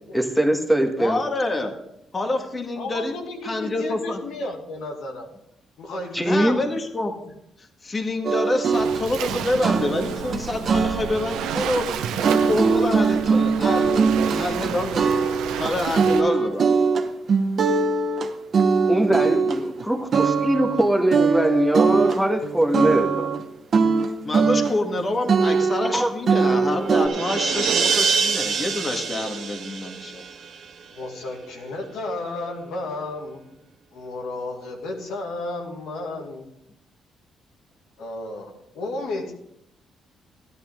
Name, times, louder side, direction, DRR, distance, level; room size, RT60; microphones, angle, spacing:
voice 1, 0.1-1.2 6.1-6.6 18.9-23.3 25.9-26.1, right 1 dB, 5° left, 2 dB, 1.5 m, -21 dB
voice 2, 1.0-1.7 2.1-3.1 3.4-4.2 6.2-7.1 7.8-11.9 12.3-16.7 24.2-30.2, left 2 dB, 30° left, 4 dB, 1.8 m, -27 dB
voice 3, 2.8-5.3 5.8-6.6 30.9-33.4 33.9-36.5 38.0-39.3, left 2 dB, 85° left, 1 dB, 2.3 m, -33 dB
String Beach, 8.2-19.8 20.1-20.9 21.1-23.4 23.7-25.0 25.3-27.1, right 5 dB, 50° right, 1.0 m, -21 dB
Waves surf, 8.7-16.2, right 8 dB, 90° right, 0.8 m, -32 dB
sound 1, 26.2-30.8, right 5 dB, 70° right, 1.5 m, -26 dB
13.5 x 11.0 x 3.7 m, 0.79 s
cardioid pair, 90°, 0 cm